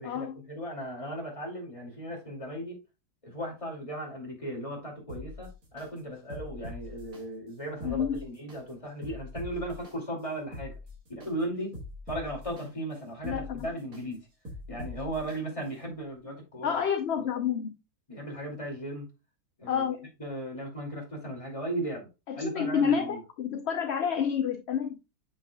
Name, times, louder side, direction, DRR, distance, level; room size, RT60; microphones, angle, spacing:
voice 1, 0.0-2.8 3.2-10.7 11.1-11.7 12.1-14.3 14.7-16.8 17.2-17.3 18.1-19.1 19.6-19.9 20.2-23.2, right 1 dB, 20° left, 2.5 m, -36 dB
sound 1, 5.1-5.9 6.3-7.2 7.7-8.6 9.0-9.9 10.4-11.3 11.7-12.6 13.1-14.0 14.4-15.4 15.8-15.9, left 1 dB, 65° right, 2.4 m, -42 dB
voice 2, 7.8-8.2 13.2-13.7 16.6-17.8 19.7-20.1 22.3-25.0, left 7 dB, 55° left, 0.8 m, -29 dB
7.3 x 6.5 x 2.3 m
omnidirectional pair, 1.7 m